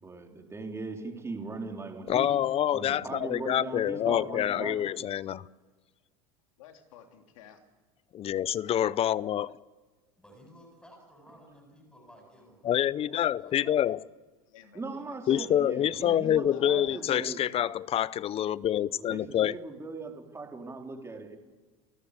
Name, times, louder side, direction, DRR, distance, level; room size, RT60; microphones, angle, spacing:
voice 1, 0.0-2.3 2.7-5.4 8.3-8.4 14.7-17.4 18.9-21.4, right 3 dB, 15° right, 3.9 m, -39 dB
voice 2, 2.1-5.5 8.1-9.6 12.6-14.0 15.3-19.5, left 11 dB, 35° left, 0.6 m, -27 dB
voice 3, 6.6-7.7 14.5-17.1, left 8 dB, 80° left, 3.1 m, -53 dB
voice 4, 10.2-14.0, equal, 5° left, 7.9 m, -55 dB
29.5 x 13.5 x 8.4 m
supercardioid pair, 100°, 17 cm